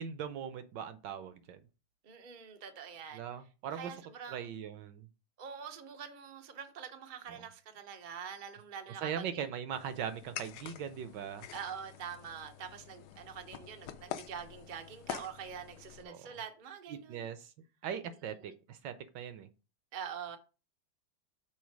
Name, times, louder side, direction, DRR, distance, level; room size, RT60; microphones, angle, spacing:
voice 1, 0.0-1.6 3.1-3.9 4.3-5.0 9.0-11.5 16.0-16.2 16.9-17.5 17.8-19.5, right 8 dB, 70° right, 1.1 m, -40 dB
voice 2, 2.0-3.2 3.7-4.5 5.4-9.5 11.5-17.2 18.2-18.5 19.9-20.4, right 7 dB, 90° right, 0.4 m, -45 dB
sound 1, 9.7-16.0, left 11 dB, 75° left, 1.0 m, -47 dB
6.2 x 4.3 x 4.6 m
omnidirectional pair, 2.3 m